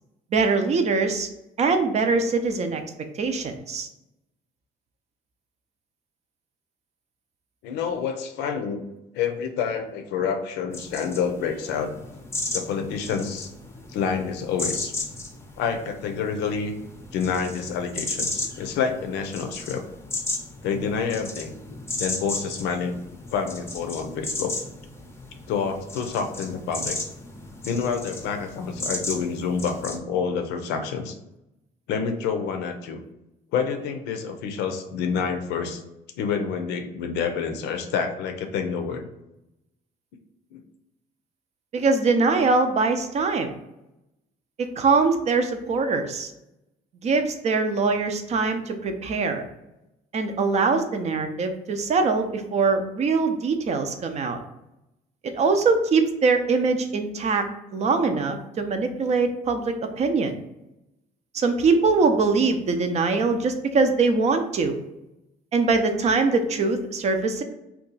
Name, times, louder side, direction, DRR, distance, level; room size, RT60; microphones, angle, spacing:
voice 1, 0.3-1.3 1.6-2.8 3.1-3.9 41.7-43.5 44.8-46.3 47.0-49.4 50.1-54.4 55.3-57.4 57.7-60.3 61.3-64.7 65.5-67.4, right 4 dB, 40° right, 7 dB, 0.5 m, -22 dB
voice 2, 7.6-8.8 9.1-11.9 12.5-13.5 13.9-14.9 15.6-16.7 17.1-19.8 20.6-21.6 22.0-22.9 23.3-24.5 25.5-27.0 27.6-31.1 31.9-33.0 33.5-35.8 36.2-39.1 40.5-40.6, left 6 dB, 85° left, 6 dB, 0.5 m, -28 dB
sound 1, 10.7-30.0, left 2 dB, 15° left, 0.6 m, -35 dB
2.7 x 2.3 x 3.9 m, 0.89 s
cardioid pair, 110°, 17 cm